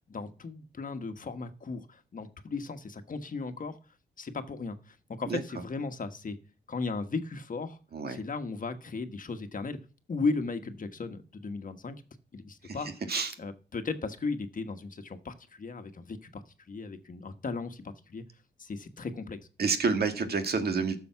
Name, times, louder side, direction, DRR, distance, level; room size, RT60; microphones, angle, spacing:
voice 1, 0.1-3.8 4.2-6.4 6.7-7.8 8.1-9.8 10.1-12.0 12.3-12.9 13.4-18.2 18.6-19.4, left 4 dB, 50° left, 8 dB, 1.4 m, -36 dB
voice 2, 19.6-21.0, right 4 dB, 60° right, 7 dB, 1.8 m, -29 dB
12.5 x 7.0 x 5.8 m, 0.37 s
cardioid pair, 75°, 18 cm